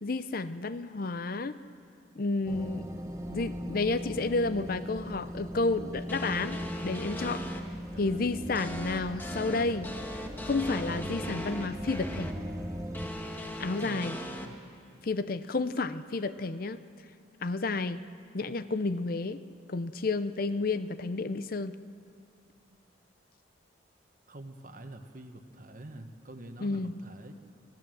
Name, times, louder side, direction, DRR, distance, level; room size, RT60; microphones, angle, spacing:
voice 1, 0.0-1.6 2.2-2.8 3.3-7.4 8.0-9.9 10.4-12.3 13.6-14.2 15.0-16.8 17.4-18.0 18.3-19.4 19.7-21.7 26.6-26.9, left 3 dB, 50° left, 13 dB, 0.6 m, -31 dB
sound 1, 2.5-13.1, equal, 15° right, 1.1 m, -39 dB
sound 2, 6.1-7.6 8.6-12.3 12.9-14.5, equal, 10° left, 1.3 m, -39 dB
voice 2, 7.9-8.3 8.8-9.1 13.8-14.6 24.3-27.3, right 1 dB, 45° right, 7 dB, 1.3 m, -47 dB
25.0 x 16.5 x 7.8 m, 2.3 s
head